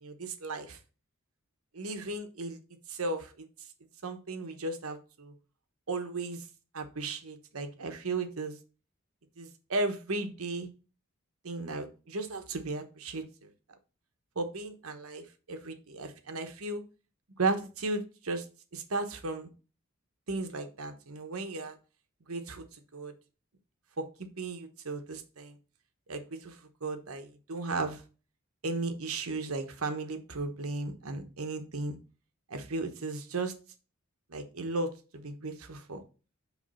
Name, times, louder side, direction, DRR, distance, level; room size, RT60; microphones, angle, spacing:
voice 1, 0.0-0.8 1.7-2.6 2.9-3.5 4.0-5.3 5.9-6.4 6.7-8.6 9.4-10.7 11.4-13.5 14.4-16.8 17.4-18.4 18.7-19.5 20.3-21.8 22.3-23.1 24.0-25.6 26.1-28.0 28.6-32.0 32.5-33.5 34.3-36.0, right 3 dB, 80° right, 7 dB, 1.0 m, -35 dB
8.2 x 3.2 x 5.4 m, 0.34 s
head